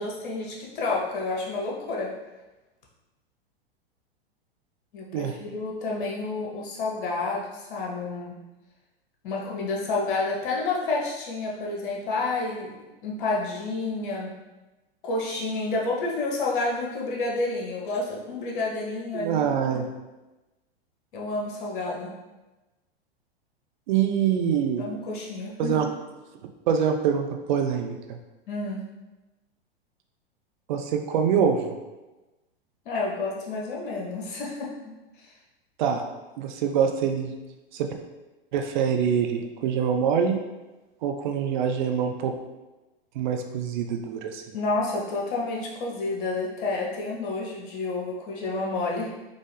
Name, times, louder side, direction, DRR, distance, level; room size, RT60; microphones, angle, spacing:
voice 1, 0.0-2.1 4.9-8.3 9.2-12.7 13.0-14.3 15.0-19.8 21.1-22.1 24.8-25.8 28.5-28.8 32.8-34.9 44.5-49.1, left 3 dB, 55° left, -2 dB, 1.0 m, -29 dB
voice 2, 19.1-19.9 23.9-24.8 25.6-25.9 26.7-28.2 30.7-31.7 35.8-36.0 36.4-37.3 37.7-37.9 38.5-40.4 41.0-42.3 43.2-44.5, right 7 dB, 50° right, 4 dB, 0.5 m, -25 dB
3.7 x 2.5 x 3.3 m, 1.1 s
figure-of-eight pair, 100°, 31 cm